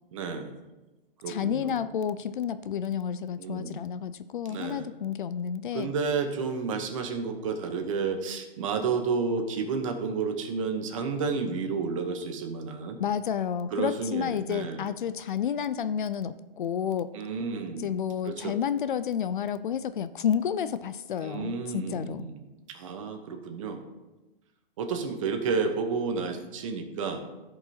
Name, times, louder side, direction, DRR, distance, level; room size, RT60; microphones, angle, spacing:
voice 1, 0.1-0.5 1.2-1.8 3.4-3.8 4.4-4.9 5.7-13.0 13.7-14.9 17.1-17.8 18.2-18.5 21.2-22.4 22.7-23.8 24.8-27.2, right 5 dB, 35° right, 6 dB, 0.9 m, -31 dB
voice 2, 1.3-5.9 13.0-17.1 17.8-22.3, left 8 dB, 60° left, 13 dB, 0.5 m, -30 dB
15.0 x 5.3 x 2.8 m, 1.1 s
hypercardioid pair, 155°, 29 cm